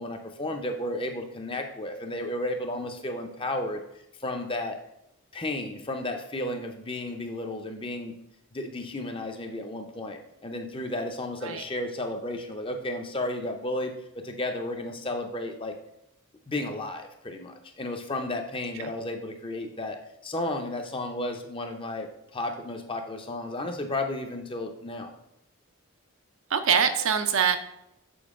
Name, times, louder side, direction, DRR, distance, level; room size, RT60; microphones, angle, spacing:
voice 1, 0.0-3.8 4.2-4.8 5.3-8.2 8.5-15.8 16.5-20.0 20.2-25.1, left 1 dB, 25° left, 4 dB, 0.6 m, -33 dB
voice 2, 26.5-27.6, right 7 dB, 65° right, 8 dB, 0.6 m, -24 dB
7.0 x 4.6 x 3.6 m, 0.83 s
head